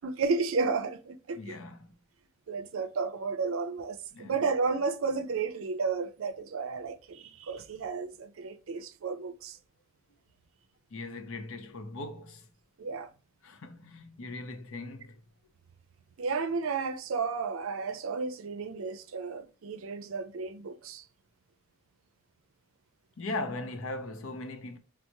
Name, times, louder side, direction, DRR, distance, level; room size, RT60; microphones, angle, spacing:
voice 1, 0.0-1.6 2.5-9.6 12.8-13.1 16.2-21.0, right 4 dB, 75° right, 0.5 m, -32 dB
voice 2, 1.4-1.9 4.1-4.4 10.9-12.5 13.4-15.2 23.2-24.8, left 2 dB, 75° left, 0.6 m, -39 dB
4.4 x 2.0 x 2.6 m
head